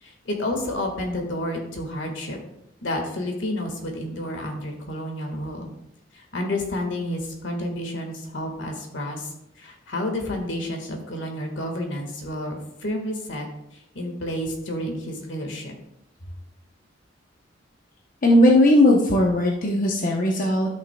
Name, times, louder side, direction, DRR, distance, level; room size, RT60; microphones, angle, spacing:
voice 1, 0.0-2.4 2.8-5.7 6.1-9.3 9.6-13.5 13.9-15.7, left 1 dB, 75° left, 3 dB, 1.6 m, -30 dB
voice 2, 18.2-20.7, left 1 dB, 45° left, -1 dB, 0.8 m, -18 dB
13.5 x 6.0 x 2.3 m, 0.80 s
head